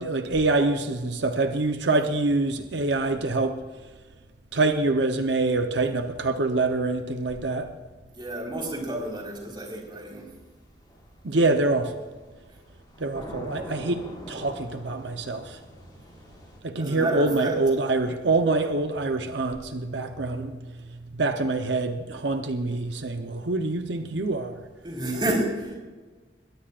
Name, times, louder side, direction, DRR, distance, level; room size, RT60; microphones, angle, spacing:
voice 1, 0.0-3.6 4.5-7.7 11.2-12.0 13.0-15.6 16.6-20.7 21.1-24.6, right 2 dB, 85° right, 6 dB, 0.9 m, -25 dB
voice 2, 8.1-10.3 16.8-17.5 24.8-25.8, right 1 dB, 25° right, -1 dB, 4.5 m, -30 dB
sound 1, 8.5-16.6, left 1 dB, 25° left, 5.3 m, -45 dB
22.0 x 17.5 x 2.5 m, 1.3 s
head